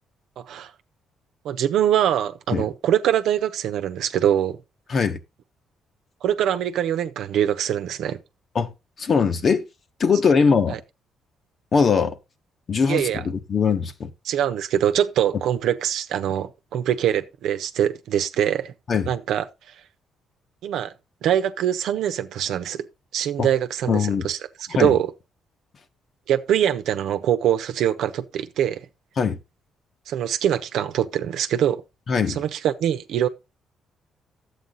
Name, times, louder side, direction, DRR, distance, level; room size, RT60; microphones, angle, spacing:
voice 1, 0.4-0.7 1.4-4.6 6.2-8.2 10.7-10.8 12.9-13.2 14.2-18.7 19.1-19.5 20.6-20.9 21.2-22.8 23.1-24.4 24.7-25.1 26.3-28.9 30.1-31.8 32.3-33.3, right 10 dB, 80° right, 0.9 m, -23 dB
voice 2, 9.0-9.6 10.0-10.8 11.7-12.2 12.7-14.1 18.9-19.1 23.4-23.5 23.9-24.3 24.7-24.9 29.2-29.4 32.1-32.4, left 5 dB, 50° left, 1.3 m, -21 dB
11.5 x 8.3 x 3.9 m
cardioid pair, 90°, 0 cm